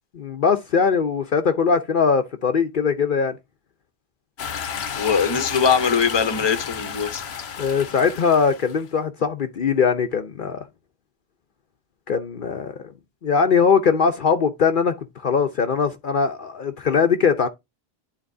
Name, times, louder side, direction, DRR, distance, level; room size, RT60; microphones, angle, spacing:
voice 1, 0.1-3.4 7.6-10.6 12.1-12.9 13.2-17.5, left 6 dB, 55° left, 0.8 m, -21 dB
sound 1, 4.4-8.9, left 7 dB, 80° left, 1.1 m, -32 dB
voice 2, 5.0-7.2, left 6 dB, 30° left, 0.8 m, -21 dB
11.0 x 3.9 x 2.6 m
omnidirectional pair, 1.0 m